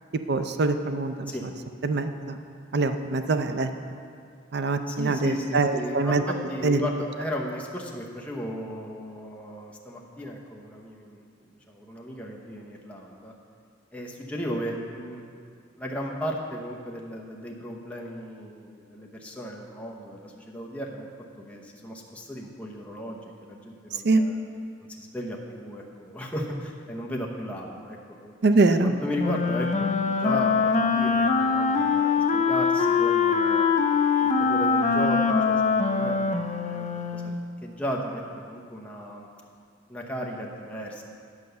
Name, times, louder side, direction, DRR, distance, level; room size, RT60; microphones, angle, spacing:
voice 1, 0.3-1.3 1.8-2.4 2.7-3.7 4.5-6.2 6.6-6.9 24.0-24.2 28.4-28.9, right 3 dB, 60° right, 8 dB, 0.5 m, -23 dB
voice 2, 4.9-11.2 11.7-13.3 13.9-15.2 15.8-21.1 21.4-24.4 24.9-28.4 28.8-33.7 34.2-36.9 37.1-39.3 39.9-41.0, equal, 5° left, -2 dB, 0.8 m, -35 dB
Wind instrument woodwind instrument, 29.2-37.3, left 5 dB, 40° left, 0.5 m, -23 dB
9.8 x 5.2 x 6.8 m, 2.3 s
head